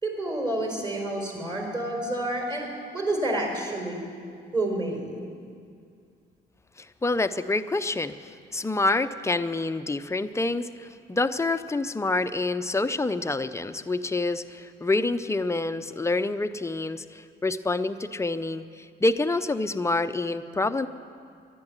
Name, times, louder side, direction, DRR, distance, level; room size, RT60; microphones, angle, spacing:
voice 1, 0.0-2.7 2.9-4.0 4.5-5.2, right 1 dB, 25° right, 2 dB, 4.4 m, -29 dB
voice 2, 6.8-20.9, left 2 dB, 15° left, 10 dB, 0.5 m, -27 dB
11.5 x 10.5 x 9.7 m, 2.3 s
cardioid pair, 90°, 20 cm